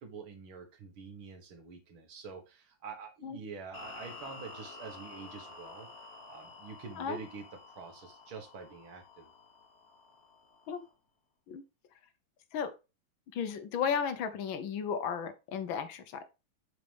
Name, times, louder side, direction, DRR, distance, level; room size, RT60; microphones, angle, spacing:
voice 1, 0.0-5.9 6.3-9.3, right 5 dB, 80° right, 5 dB, 2.3 m, -46 dB
sound 1, 3.7-10.9, left 3 dB, 45° left, 1.8 m, -50 dB
voice 2, 13.3-16.2, left 7 dB, 75° left, 10 dB, 1.6 m, -34 dB
7.0 x 6.6 x 3.4 m, 0.27 s
omnidirectional pair, 2.2 m